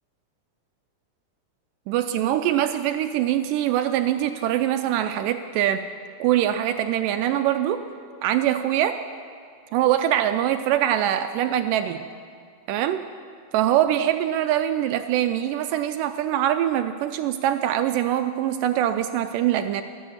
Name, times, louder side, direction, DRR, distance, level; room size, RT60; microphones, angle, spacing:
voice 1, 1.9-5.9 6.2-7.8 8.2-9.0 9.7-12.0 12.7-13.0 13.5-19.8, right 11 dB, 80° right, 9 dB, 2.0 m, -23 dB
13.5 x 9.9 x 7.9 m, 2.1 s
omnidirectional pair, 4.0 m